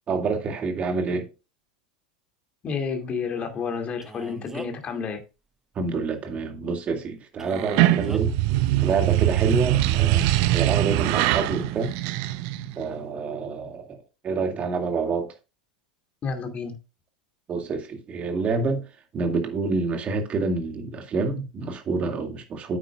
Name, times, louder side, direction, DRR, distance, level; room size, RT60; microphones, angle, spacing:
voice 1, 0.1-1.3 5.8-8.4 8.8-11.9 12.8-14.0 14.2-15.3 17.5-18.8 19.1-22.8, right 4 dB, 30° right, 2.2 m, -27 dB
voice 2, 2.6-5.2 16.2-16.7, left 5 dB, 30° left, 2.4 m, -30 dB
Male speech man speaking, 4.0-4.9 7.4-8.2, right 2 dB, 10° right, 1.0 m, -39 dB
sound 1, 7.5-12.8, right 15 dB, 55° right, 0.7 m, -22 dB
9.0 x 8.6 x 2.4 m
hypercardioid pair, 85°, 4 cm